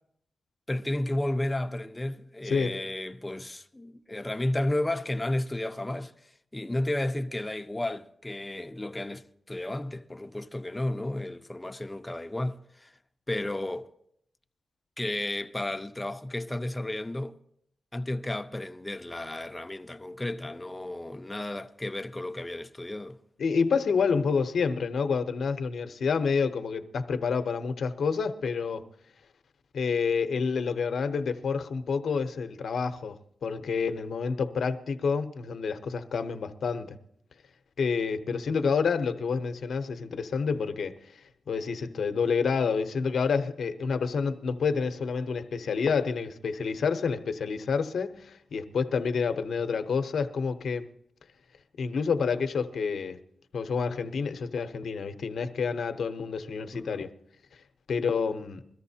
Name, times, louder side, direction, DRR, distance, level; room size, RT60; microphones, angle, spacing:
voice 1, 0.7-6.1 6.5-12.9 13.3-13.9 15.0-17.4 17.9-23.2 56.7-57.0, left 1 dB, 15° left, 0.7 m, -33 dB
voice 2, 2.4-2.8 23.4-28.8 29.7-37.0 37.8-40.9 41.5-50.9 51.8-53.2 53.5-57.1 57.9-58.7, left 5 dB, 75° left, 0.8 m, -28 dB
22.0 x 13.5 x 2.8 m
cardioid pair, 70°, 0 cm